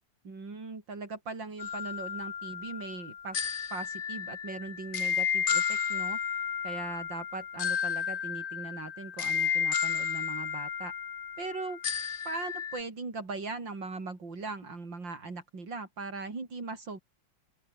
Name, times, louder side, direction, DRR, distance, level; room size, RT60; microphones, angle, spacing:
voice 1, 0.2-6.2 6.6-10.9 11.4-11.8 12.3-17.0, right 3 dB, 70° right, 5.2 m, -40 dB
sound 1, 1.6-12.8, left 7 dB, 80° left, 0.4 m, -32 dB
open air
omnidirectional pair, 2.1 m